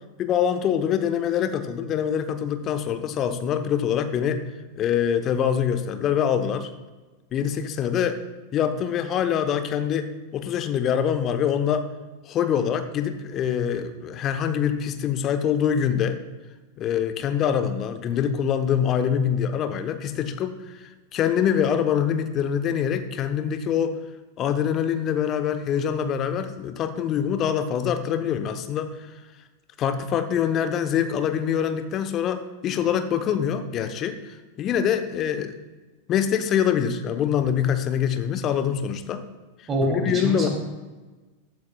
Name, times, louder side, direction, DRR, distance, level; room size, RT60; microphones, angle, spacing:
voice 1, 0.2-4.4 4.8-6.7 7.3-8.2 8.5-11.9 12.3-16.2 16.8-24.0 24.4-28.9 29.8-35.5 36.1-39.2 39.8-40.5, left 8 dB, 30° left, 9 dB, 1.0 m, -24 dB
voice 2, 39.7-40.5, right 2 dB, 20° right, 1 dB, 2.9 m, -25 dB
14.5 x 11.0 x 2.3 m, 1.2 s
figure-of-eight pair, 90°, 0 cm